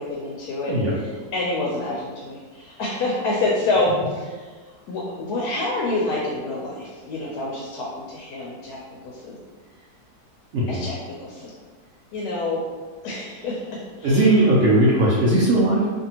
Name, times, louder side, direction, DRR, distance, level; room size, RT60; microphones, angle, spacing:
voice 1, 0.0-4.5 4.9-8.8 9.0-9.4 10.7-10.9 11.2-11.5 12.1-12.6 13.0-13.6 14.0-14.5, left 2 dB, 80° left, -3 dB, 1.1 m, -27 dB
voice 2, 14.0-15.9, right 1 dB, 70° right, -6 dB, 0.9 m, -18 dB
2.7 x 2.6 x 2.8 m, 1.4 s
omnidirectional pair, 1.7 m